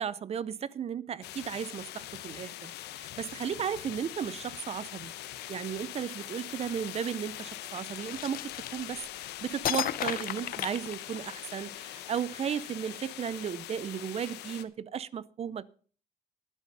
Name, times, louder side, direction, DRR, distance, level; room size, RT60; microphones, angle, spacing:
voice 1, 0.0-5.1 5.5-9.0 9.4-15.6, right 8 dB, 40° right, 0.7 m, -35 dB
sound 1, 1.2-14.6, left 14 dB, 80° left, 1.1 m, -43 dB
sound 2, 8.1-9.2 9.6-11.5, left 11 dB, 60° left, 0.8 m, -33 dB
12.5 x 10.0 x 5.4 m
cardioid pair, 110°, 17 cm